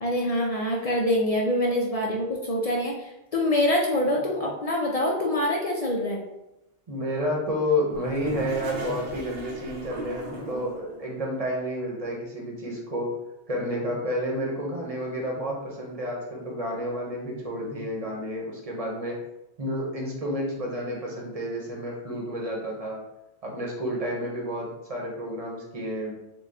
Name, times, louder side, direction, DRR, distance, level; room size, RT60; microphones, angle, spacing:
voice 1, 0.0-6.2, left 1 dB, 50° left, -1 dB, 0.5 m, -25 dB
voice 2, 6.9-13.1 13.5-19.2 19.6-23.0 23.4-26.1, equal, 35° right, -2 dB, 0.9 m, -30 dB
Toilet flush, 7.9-11.0, right 1 dB, 85° right, 1.1 m, -37 dB
3.9 x 2.2 x 3.4 m, 0.91 s
omnidirectional pair, 1.1 m